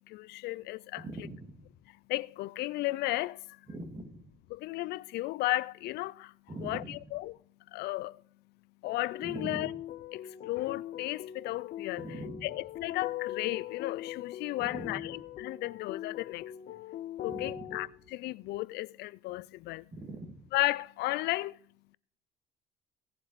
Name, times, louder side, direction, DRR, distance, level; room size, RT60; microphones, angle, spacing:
voice 1, 0.1-1.0 2.1-3.6 4.5-6.3 6.6-7.4 7.7-8.2 8.8-9.7 10.1-12.0 12.4-16.5 17.2-19.9 20.5-21.6, left 18 dB, 75° left, 0.4 m, -34 dB
voice 2, 1.0-1.6 3.7-4.2 6.5-7.0 9.2-9.7 12.0-12.5 14.6-15.1 17.2-17.7 19.9-20.4, right 2 dB, 25° right, 2.2 m, -42 dB
sound 1, 8.8-17.9, left 12 dB, 60° left, 0.9 m, -41 dB
16.5 x 7.5 x 4.1 m
cardioid pair, 110°, 17 cm